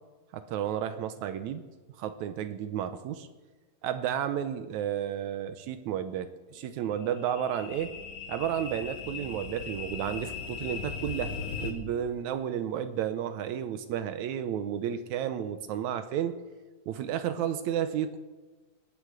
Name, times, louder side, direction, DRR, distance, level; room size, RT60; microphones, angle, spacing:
voice 1, 0.3-1.6 2.0-3.3 3.8-7.9 8.3-16.4 16.9-18.2, right 9 dB, 80° right, 11 dB, 1.7 m, -32 dB
sound 1, 6.6-11.7, left 5 dB, 70° left, 3.2 m, -39 dB
20.0 x 8.4 x 7.9 m, 1.3 s
omnidirectional pair, 4.2 m